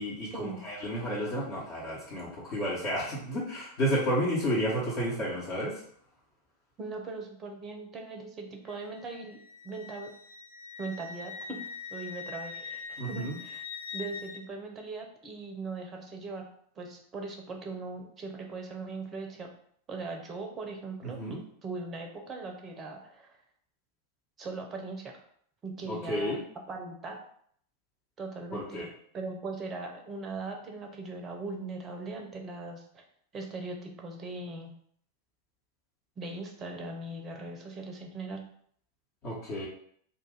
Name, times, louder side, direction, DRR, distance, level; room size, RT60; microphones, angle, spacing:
voice 1, 0.0-5.8 13.0-13.4 21.0-21.4 25.9-26.4 28.5-28.9 39.2-39.7, equal, 40° left, -7 dB, 1.2 m, -31 dB
voice 2, 6.8-9.4 9.6-10.1 10.8-11.6 11.9-13.6 13.9-16.5 16.8-19.5 19.9-23.4 24.4-25.2 25.6-26.4 26.7-27.2 28.2-28.8 29.1-33.0 33.3-34.7 36.2-38.4, right 3 dB, 25° right, 2 dB, 0.7 m, -40 dB
Wind instrument woodwind instrument, 8.7-14.4, left 5 dB, 55° left, 0.4 m, -43 dB
2.6 x 2.5 x 3.9 m, 0.63 s
figure-of-eight pair, 90°, 0 cm